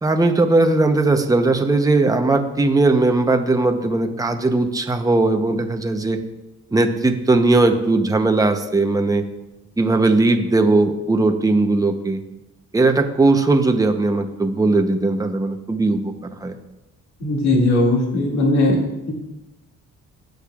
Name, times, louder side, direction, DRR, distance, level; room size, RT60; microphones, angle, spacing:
voice 1, 0.0-6.2 6.7-9.3 9.8-12.2 12.7-16.1 16.4-16.5, right 2 dB, 10° right, 6 dB, 0.8 m, -18 dB
voice 2, 17.2-18.8, left 2 dB, 65° left, -2 dB, 2.3 m, -18 dB
18.5 x 6.5 x 2.4 m, 0.98 s
cardioid pair, 90°, 30 cm